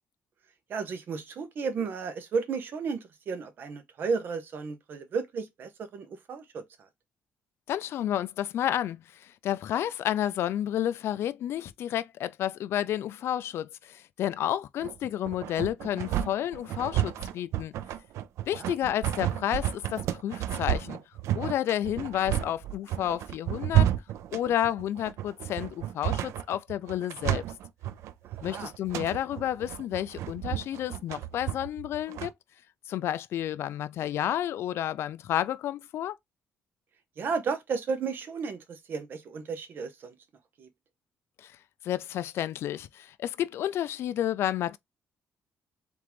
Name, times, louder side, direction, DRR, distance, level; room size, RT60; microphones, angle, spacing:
voice 1, 0.7-6.9 18.6-18.8 28.5-28.7 37.2-40.1 40.6-40.7, right 5 dB, 45° right, 0.9 m, -33 dB
voice 2, 7.7-17.7 18.5-21.0 21.3-23.9 24.3-27.5 28.4-32.3 32.9-36.2 41.4-41.5 41.8-44.8, left 11 dB, 60° left, 0.4 m, -31 dB
sound 1, 14.8-32.3, right 12 dB, 85° right, 0.4 m, -31 dB
3.8 x 3.5 x 3.0 m
cardioid pair, 170°, 5 cm